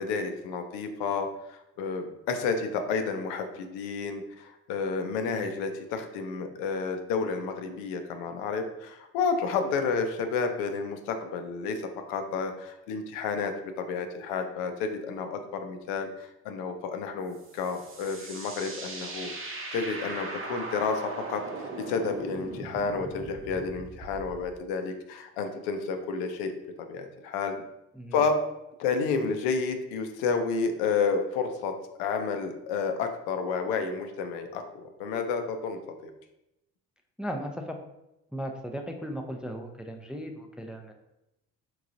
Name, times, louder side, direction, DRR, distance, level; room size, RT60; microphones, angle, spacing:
voice 1, 0.0-11.8 12.1-26.5 26.9-27.5 28.1-28.4 28.8-36.1, left 5 dB, 75° left, 6 dB, 0.6 m, -31 dB
sound 1, 17.3-24.5, right 3 dB, 35° right, 0.8 m, -39 dB
voice 2, 37.2-37.8 38.3-40.9, equal, 5° right, 3 dB, 0.4 m, -36 dB
3.7 x 3.0 x 2.5 m, 0.87 s
hypercardioid pair, 55°, 37 cm